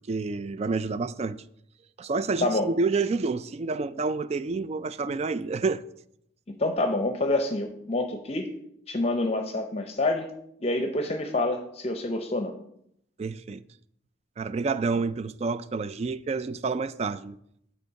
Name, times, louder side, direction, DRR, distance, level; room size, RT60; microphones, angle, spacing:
voice 1, 0.1-1.4 2.0-5.8 13.2-13.6 14.4-17.4, right 4 dB, 35° right, 0.3 m, -29 dB
voice 2, 6.6-8.5 8.9-10.3 10.6-12.5, left 2 dB, 35° left, 0.7 m, -27 dB
8.1 x 4.4 x 5.7 m
head